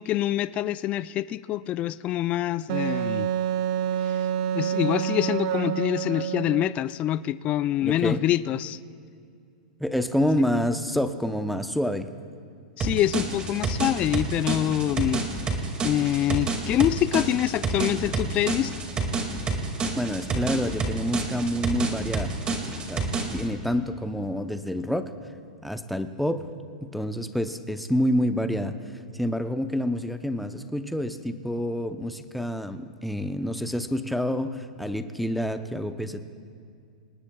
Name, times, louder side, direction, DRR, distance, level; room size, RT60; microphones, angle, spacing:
voice 1, 0.0-3.3 4.5-8.8 12.8-15.2 15.8-18.7, left 13 dB, 30° left, 16 dB, 0.3 m, -25 dB
Wind instrument woodwind instrument, 2.7-6.8, right 10 dB, 50° right, 0.6 m, -27 dB
voice 2, 7.8-8.2 9.8-12.1 19.9-22.3 22.8-25.1 25.6-26.5 26.8-28.8 29.1-36.2, equal, ahead, 9 dB, 0.7 m, -28 dB
sound 1, 12.8-23.5, right 3 dB, 20° right, 2.2 m, -29 dB
27.0 x 19.0 x 2.3 m, 2.3 s
hypercardioid pair, 130°, 4 cm